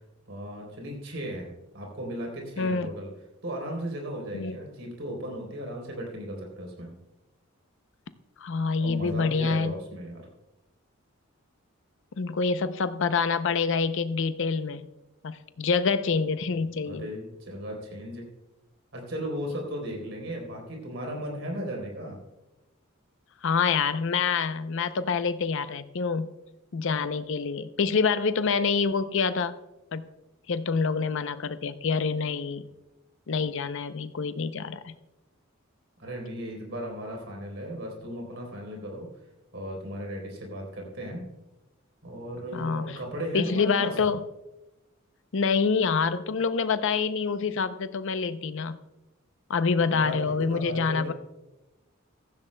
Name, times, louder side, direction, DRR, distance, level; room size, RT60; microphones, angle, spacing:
voice 1, 0.3-3.1 3.4-6.9 8.8-10.2 16.8-18.2 18.9-22.2 36.0-39.1 39.5-41.3 42.0-43.9 49.9-51.1, equal, 65° right, 0 dB, 3.7 m, -36 dB
voice 2, 2.6-2.9 4.3-4.6 8.4-9.7 12.2-14.9 15.2-17.1 23.4-26.3 26.7-29.5 29.9-30.1 30.5-32.7 33.3-34.9 42.5-43.0 43.3-44.2 45.3-48.8 49.5-51.1, left 5 dB, 65° left, 12 dB, 0.6 m, -26 dB
15.5 x 14.5 x 2.2 m, 1.0 s
head